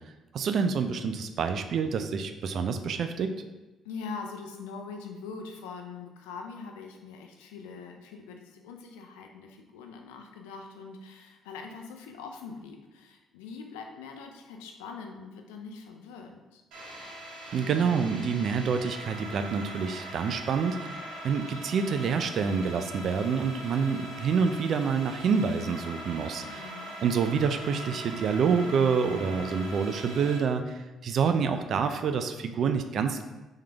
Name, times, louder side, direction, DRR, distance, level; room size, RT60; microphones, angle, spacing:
voice 1, 0.3-3.3 17.5-26.6 27.0-33.2, right 6 dB, 60° right, 8 dB, 0.4 m, -27 dB
voice 2, 3.8-16.6 26.4-27.0, left 5 dB, 90° left, 3 dB, 0.4 m, -43 dB
sound 1, 16.7-30.4, right 1 dB, 75° right, 0.9 m, -41 dB
3.6 x 3.2 x 3.4 m, 1.1 s
supercardioid pair, 60°, 0 cm